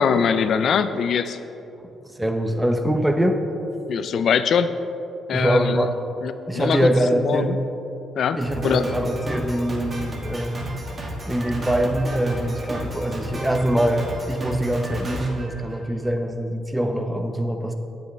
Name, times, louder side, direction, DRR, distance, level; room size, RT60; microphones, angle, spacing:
voice 1, 0.0-1.4 3.9-4.7 5.3-5.9 6.2-6.9 7.2-7.6 8.2-8.4 8.6-8.8, left 7 dB, 65° left, 11 dB, 0.4 m, -22 dB
voice 2, 2.2-3.4 5.3-5.9 6.5-7.6 8.4-10.7 11.3-17.7, right 1 dB, 10° right, 5 dB, 0.7 m, -23 dB
Drum kit, 8.4-16.2, equal, 40° right, 1.5 m, -33 dB
8.7 x 7.7 x 3.5 m, 2.9 s
cardioid pair, 90°, 0 cm